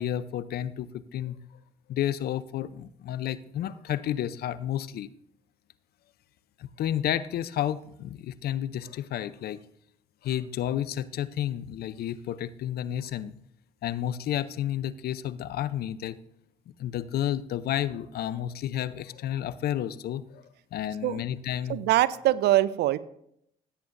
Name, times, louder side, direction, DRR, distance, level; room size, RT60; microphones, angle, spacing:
voice 1, 0.0-1.4 1.9-5.1 6.6-9.6 10.2-13.3 13.8-16.2 16.8-20.4 20.7-21.8, left 11 dB, 60° left, 16 dB, 0.6 m, -31 dB
voice 2, 21.7-23.0, right 15 dB, 65° right, 18 dB, 0.5 m, -23 dB
17.0 x 8.6 x 2.6 m, 0.73 s
hypercardioid pair, 60°, 18 cm